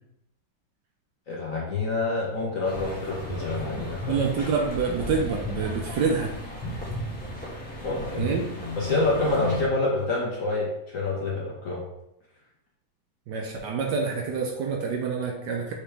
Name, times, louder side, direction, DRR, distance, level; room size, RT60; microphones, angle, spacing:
voice 1, 1.3-4.2 7.8-8.3 8.8-11.8, left 3 dB, 55° left, -4 dB, 1.0 m, -27 dB
sound 1, 2.6-9.7, left 1 dB, 5° left, 1.0 m, -34 dB
voice 2, 4.1-6.3 8.2-8.5 13.3-15.7, right 5 dB, 70° right, 0 dB, 1.1 m, -27 dB
4.9 x 3.3 x 3.3 m, 0.83 s
omnidirectional pair, 2.2 m